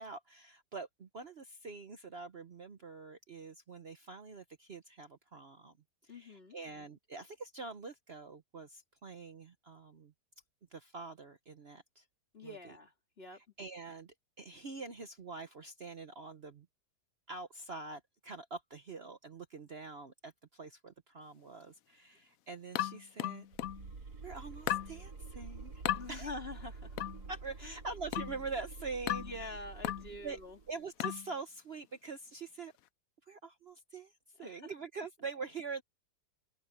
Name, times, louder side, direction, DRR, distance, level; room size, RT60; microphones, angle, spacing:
voice 1, 0.0-5.7 6.0-10.1 10.7-12.0 12.4-12.7 13.3-16.7 17.3-23.5 24.2-25.8 26.1-26.4 27.3-29.5 30.2-30.4 30.7-32.7 33.3-35.8, right 4 dB, 45° right, 1.1 m, -45 dB
voice 2, 6.1-6.6 12.3-13.4 26.0-27.0 27.6-27.7 29.2-30.6 34.4-34.5, left 2 dB, 35° left, 2.4 m, -46 dB
sound 1, 22.8-23.9 24.7-25.0 25.9-26.1 27.0-27.2 28.1-28.4 29.1-29.4 29.8-30.1 31.0-31.3, left 12 dB, 65° left, 1.0 m, -35 dB
sound 2, 23.5-30.8, right 4 dB, 80° right, 2.9 m, -48 dB
omnidirectional pair, 1.7 m